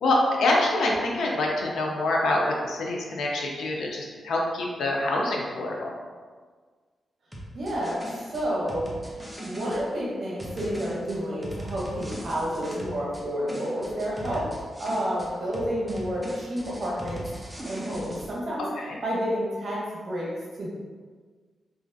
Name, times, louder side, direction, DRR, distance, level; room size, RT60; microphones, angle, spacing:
voice 1, 0.0-5.9 14.2-14.4 18.8-19.0, left 2 dB, 85° left, -2 dB, 0.5 m, -26 dB
sound 1, 7.3-9.8 10.4-13.2 13.5-15.3 15.5-18.3, right 1 dB, 5° right, 0.7 m, -39 dB
voice 2, 7.5-8.9 9.4-14.4 14.8-17.2 17.6-18.7 19.0-19.8 20.1-20.3 20.6-20.7, equal, 60° right, -5 dB, 0.7 m, -30 dB
3.1 x 2.4 x 2.6 m, 1.5 s
cardioid pair, 70°, 0 cm